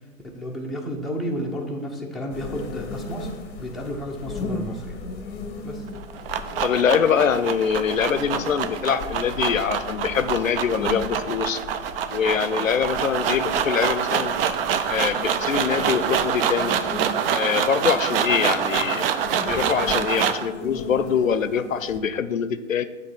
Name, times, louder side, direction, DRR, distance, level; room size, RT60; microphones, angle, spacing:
voice 1, 0.3-3.3 3.6-5.0 5.6-5.9, equal, ahead, -2 dB, 0.7 m, -31 dB
sound 1, 2.3-22.0, left 3 dB, 25° left, 0.9 m, -37 dB
sound 2, 5.9-20.5, right 8 dB, 50° right, 0.6 m, -26 dB
voice 2, 6.6-11.6 12.1-14.3 14.9-16.8 17.3-19.1 19.5-22.8, left 7 dB, 85° left, 13 dB, 0.5 m, -24 dB
7.6 x 3.1 x 5.9 m, 1.2 s
figure-of-eight pair, 110°, 39 cm